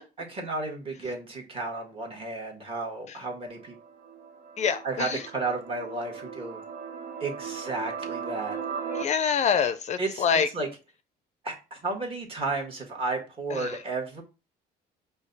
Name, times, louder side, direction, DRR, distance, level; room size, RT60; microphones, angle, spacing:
voice 1, 0.2-3.7 4.8-6.6 7.2-8.6 10.0-10.7 11.4-14.2, right 3 dB, 35° right, 1 dB, 1.5 m, -33 dB
sound 1, 3.5-9.0, right 6 dB, 65° right, 0.9 m, -38 dB
voice 2, 4.6-5.1 9.0-10.5 13.6-13.7, left 6 dB, 45° left, 12 dB, 0.4 m, -25 dB
5.1 x 2.3 x 3.9 m, 0.30 s
cardioid pair, 110°, 17 cm